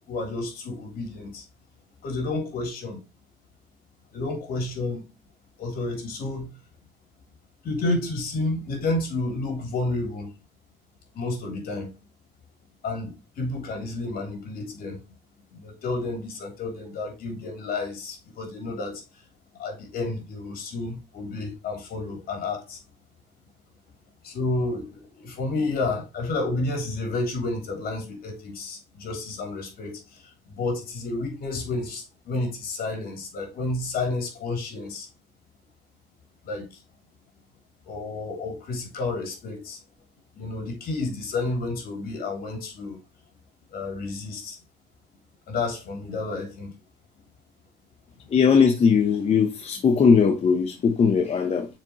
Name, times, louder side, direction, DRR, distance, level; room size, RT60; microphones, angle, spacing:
voice 1, 0.1-1.4 2.0-3.0 4.1-5.0 5.6-6.5 7.6-10.3 11.1-11.9 12.8-15.0 15.5-19.0 19.6-22.8 24.2-30.2 30.5-35.1 36.4-36.7 37.9-39.8 40.4-43.0 43.7-44.6 45.5-46.7, left 2 dB, 60° left, 3.1 m, -30 dB
voice 2, 48.3-51.7, left 6 dB, 40° left, 0.9 m, -19 dB
6.8 x 4.7 x 3.0 m
cardioid pair, 110°, 17 cm